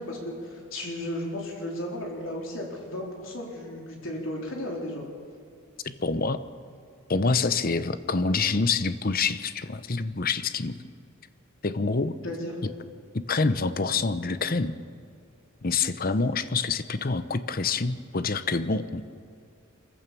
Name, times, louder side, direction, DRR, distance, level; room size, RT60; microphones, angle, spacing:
voice 1, 0.0-5.0 12.2-12.5, left 1 dB, 65° left, -1 dB, 4.2 m, -34 dB
voice 2, 5.8-6.4 7.1-10.9 11.6-12.2 13.1-14.8 15.6-19.0, left 4 dB, 45° left, 12 dB, 0.8 m, -26 dB
25.5 x 15.0 x 7.0 m, 2.3 s
head